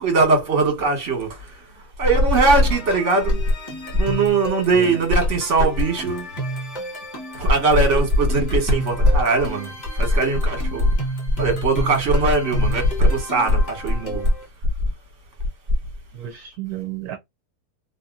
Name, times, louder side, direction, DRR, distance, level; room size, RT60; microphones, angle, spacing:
voice 1, 0.0-1.7 2.0-3.4 3.9-6.3 7.3-10.9 11.4-14.3, right 2 dB, 50° right, 1.5 m, -19 dB
sound 1, 2.1-14.4, right 1 dB, 30° left, 1.6 m, -33 dB
voice 2, 4.7-5.0 16.1-17.2, right 12 dB, 75° right, 1.1 m, -32 dB
2.8 x 2.8 x 2.3 m
omnidirectional pair, 1.6 m